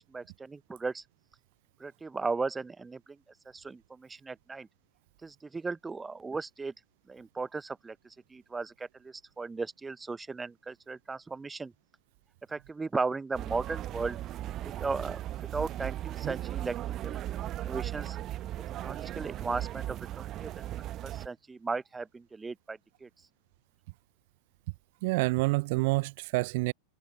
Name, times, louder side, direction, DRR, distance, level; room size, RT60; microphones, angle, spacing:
voice 1, 0.1-1.0 1.8-3.2 3.5-4.7 5.2-6.7 7.1-8.0 8.3-11.7 12.5-14.2 14.6-15.2 15.5-16.8 17.0-18.2 18.8-20.7 21.0-23.1, right 4 dB, 10° right, 0.8 m, -36 dB
sound 1, 13.3-21.3, right 13 dB, 30° right, 1.2 m, -37 dB
voice 2, 25.0-26.7, right 24 dB, 50° right, 0.5 m, -27 dB
figure-of-eight pair, 90°, 0 cm